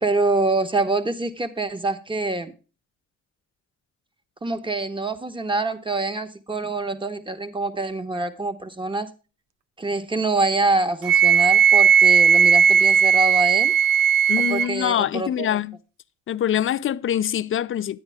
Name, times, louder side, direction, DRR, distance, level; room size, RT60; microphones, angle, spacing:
voice 1, 0.0-2.5 4.4-9.1 9.8-13.7 14.4-15.6, right 2 dB, 15° right, 1.0 m, -25 dB
Wind instrument woodwind instrument, 11.0-14.7, right 7 dB, 90° right, 0.5 m, -16 dB
voice 2, 14.3-15.8 16.3-18.0, left 10 dB, 45° left, 0.4 m, -24 dB
9.7 x 9.1 x 3.4 m
cardioid pair, 90°, 30 cm